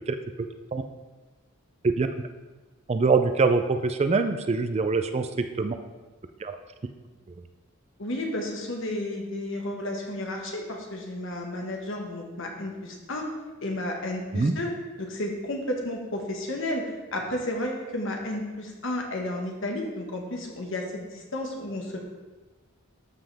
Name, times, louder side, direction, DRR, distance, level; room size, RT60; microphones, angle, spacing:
voice 1, 2.9-5.3 5.6-5.8 6.4-6.6 14.3-14.5, right 4 dB, 30° right, 8 dB, 0.4 m, -24 dB
voice 2, 8.0-13.3 13.6-14.7 15.0-22.0, left 1 dB, 60° left, 1 dB, 1.5 m, -32 dB
12.5 x 5.6 x 3.4 m, 1.2 s
head